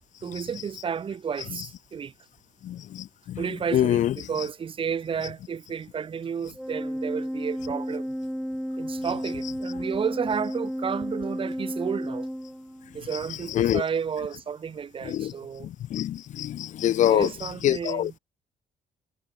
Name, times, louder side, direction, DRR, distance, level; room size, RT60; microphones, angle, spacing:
voice 1, 0.2-2.1 3.4-8.1 8.8-12.3 12.9-15.7 17.1-18.1, right 7 dB, 40° right, 2.3 m, -32 dB
voice 2, 2.6-3.4 3.7-4.1 13.5-13.8 15.1-15.3 15.6-17.3 17.6-18.1, left 12 dB, 60° left, 0.8 m, -25 dB
Organ, 6.6-13.1, equal, ahead, 1.5 m, -32 dB
cardioid pair, 130°, 14 cm